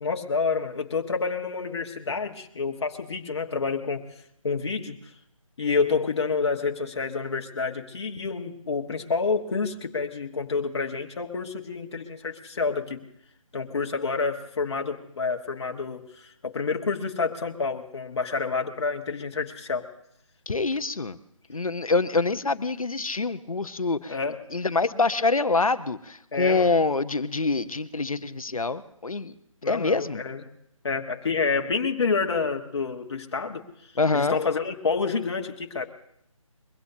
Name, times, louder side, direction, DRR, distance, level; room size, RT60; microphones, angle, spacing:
voice 1, 0.0-4.0 4.4-5.1 5.6-13.0 13.5-19.9 24.1-24.5 26.3-26.7 29.6-30.4 30.8-33.6 34.1-35.9, left 4 dB, 50° left, 2 dB, 1.5 m, -28 dB
voice 2, 20.5-21.2 21.5-24.2 24.5-29.3 29.7-30.2 34.0-34.4, left 3 dB, 90° left, 12 dB, 0.9 m, -25 dB
22.5 x 16.5 x 2.8 m, 0.74 s
figure-of-eight pair, 160°, 18 cm